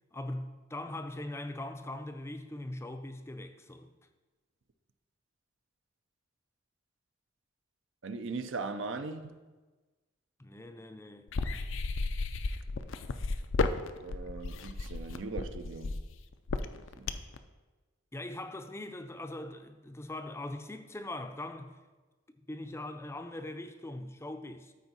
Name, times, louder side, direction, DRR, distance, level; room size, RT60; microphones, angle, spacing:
voice 1, 0.1-3.9 10.4-11.3 18.1-21.7 22.5-24.7, left 1 dB, 15° left, 0.5 m, -41 dB
voice 2, 8.0-9.4 14.0-16.0 16.9-17.1, right 4 dB, 70° right, 0.6 m, -39 dB
sound 1, 11.3-17.4, left 3 dB, 75° left, 0.5 m, -33 dB
13.5 x 4.5 x 4.1 m
head